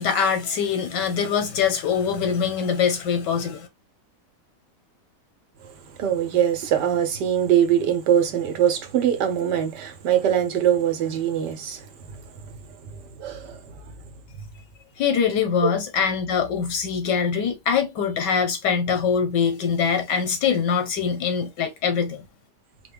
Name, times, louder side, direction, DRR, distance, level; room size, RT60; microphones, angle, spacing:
voice 1, 0.0-3.7 15.0-22.2, left 6 dB, 80° left, 1.7 m, -23 dB
voice 2, 6.0-12.2 12.4-12.5 12.9-13.8 15.6-15.7, right 9 dB, 80° right, 1.5 m, -23 dB
4.9 x 2.2 x 3.5 m
omnidirectional pair, 1.8 m